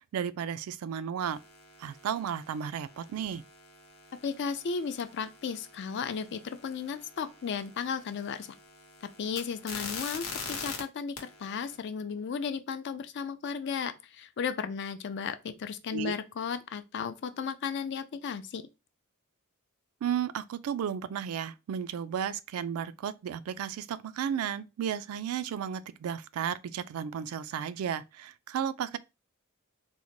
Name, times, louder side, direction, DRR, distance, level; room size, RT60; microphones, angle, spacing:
voice 1, 0.1-1.4 1.8-3.4 15.9-16.1 20.0-29.0, right 8 dB, 80° right, 0.3 m, -33 dB
sound 1, 1.2-10.8 11.2-11.8, left 5 dB, 80° left, 0.8 m, -44 dB
voice 2, 4.2-8.5 9.2-18.7, left 6 dB, 55° left, 0.4 m, -35 dB
3.8 x 2.1 x 3.0 m
head